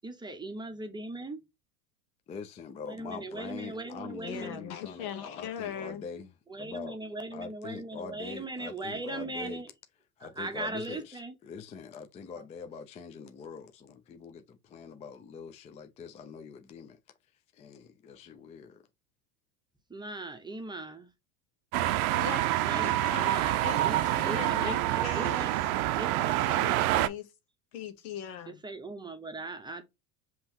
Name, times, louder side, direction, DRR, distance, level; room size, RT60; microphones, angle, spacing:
voice 1, 0.0-1.4 2.8-4.6 6.5-9.7 10.2-11.4 12.4-12.5 19.9-21.1 22.6-25.5 26.0-26.4 28.5-29.8, right 2 dB, 10° right, 0.7 m, -39 dB
voice 2, 2.3-6.3 6.6-7.0 7.3-9.6 10.2-17.0 17.5-18.9, left 5 dB, 15° left, 0.3 m, -43 dB
voice 3, 4.2-6.0 21.7-25.5 26.5-27.3 27.7-28.6, left 8 dB, 80° left, 1.2 m, -40 dB
sound 1, 21.7-27.1, right 15 dB, 80° right, 0.6 m, -27 dB
5.4 x 3.0 x 2.8 m
supercardioid pair, 105°, 43 cm